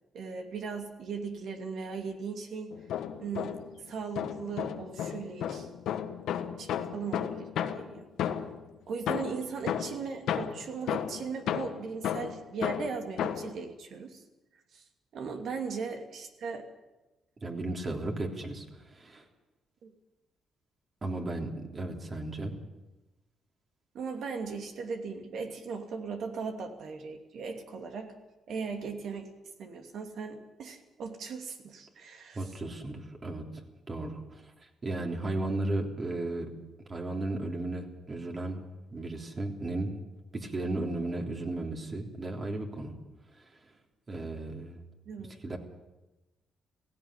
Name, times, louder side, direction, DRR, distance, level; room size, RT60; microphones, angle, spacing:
voice 1, 0.1-2.8 3.2-3.6 3.9-5.7 6.6-8.1 8.9-14.2 14.7-14.8 15.1-16.6 17.9-18.0 19.8-19.9 23.9-28.1 28.5-29.3 29.6-32.5 45.1-45.3, right 5 dB, 65° right, 5 dB, 2.7 m, -38 dB
sound 1, 2.7-3.8 4.2-8.7 9.1-13.6, left 9 dB, 80° left, 1.5 m, -33 dB
voice 2, 17.4-19.2 21.0-22.5 32.3-34.5 34.8-36.5 36.9-38.6 38.9-39.9 40.3-42.9 44.1-44.8 45.4-45.6, right 2 dB, 35° right, 3 dB, 3.4 m, -35 dB
16.5 x 16.0 x 9.9 m, 1.1 s
cardioid pair, 90°, 0 cm